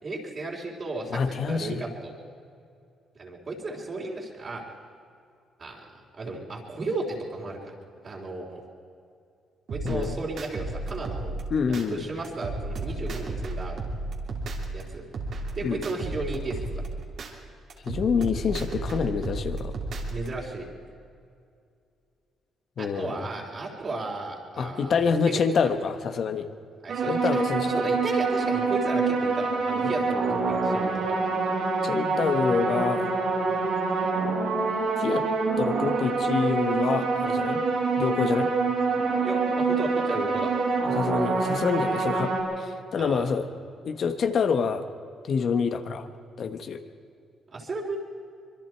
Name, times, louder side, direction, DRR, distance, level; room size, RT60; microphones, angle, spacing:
voice 1, 0.0-2.1 3.2-4.6 5.6-5.9 6.1-7.7 8.0-8.6 9.7-11.3 11.7-13.8 14.7-15.0 15.5-16.8 20.1-20.7 22.8-25.4 26.8-27.3 27.7-31.2 39.2-40.5 43.0-43.3 47.5-48.0, right 2 dB, 45° right, -3 dB, 3.6 m, -34 dB
voice 2, 1.1-1.8 9.8-10.2 11.5-12.0 15.6-15.8 17.8-19.7 22.8-23.2 24.6-26.5 27.1-27.7 29.8-30.0 31.8-33.2 35.0-35.2 35.6-37.6 38.0-38.5 40.9-43.5 43.8-44.8 45.2-46.1 46.4-46.8, left 6 dB, 55° left, 8 dB, 1.4 m, -27 dB
sound 1, 9.7-11.8 12.2-14.8 15.1-17.3 17.7-20.3, right 2 dB, 60° right, 3.1 m, -33 dB
sound 2, 26.9-42.4, right 4 dB, 80° right, 7.1 m, -26 dB
25.0 x 22.5 x 4.6 m, 2.4 s
cardioid pair, 90°, 0 cm